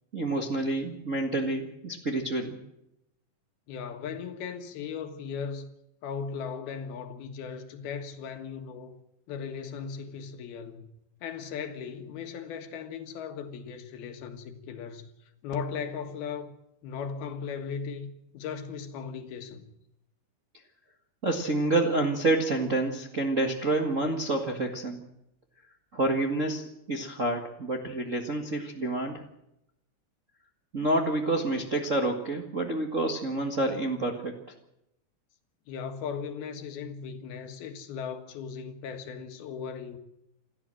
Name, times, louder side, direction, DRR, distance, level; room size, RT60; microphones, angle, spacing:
voice 1, 0.1-2.6 21.2-25.0 25.9-29.2 30.7-34.3, right 2 dB, 40° right, 1.1 m, -28 dB
voice 2, 3.7-5.7 6.0-8.9 9.3-10.9 11.2-15.1 15.4-16.5 16.8-19.7 35.7-40.0, left 6 dB, 80° left, 3.5 m, -37 dB
28.0 x 13.5 x 7.7 m
omnidirectional pair, 4.3 m